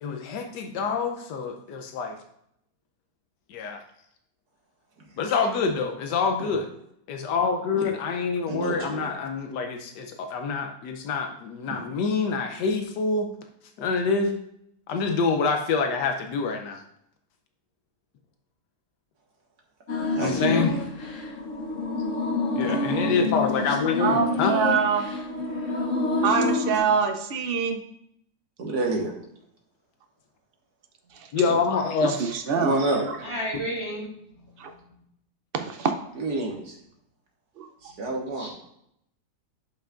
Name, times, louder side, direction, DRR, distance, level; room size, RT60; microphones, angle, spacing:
voice 1, 0.0-2.1 3.5-3.8 5.2-6.7 7.1-13.3 13.8-14.4 14.9-16.8 20.2-20.7 22.6-24.6 31.3-32.2, left 5 dB, 85° left, 5 dB, 1.3 m, -26 dB
voice 2, 8.5-9.1 11.7-11.8 20.0-20.8 22.6-23.1 26.9-27.0 28.6-29.1 31.5-31.6 32.5-33.2 36.2-36.8 37.8-38.5, right 2 dB, 70° right, 0 dB, 2.0 m, -29 dB
sound 1, 19.9-26.8, left 2 dB, 50° left, 1.3 m, -27 dB
voice 3, 24.0-25.1 26.2-27.8 31.1-31.3 32.0-32.8 34.6-34.7 35.5-35.9 37.6-37.7, right 6 dB, 90° right, 6 dB, 0.5 m, -25 dB
voice 4, 33.2-34.9 37.9-38.0 38.4-38.5, equal, 30° right, -10 dB, 3.6 m, -34 dB
11.5 x 5.7 x 2.5 m, 0.74 s
omnidirectional pair, 1.8 m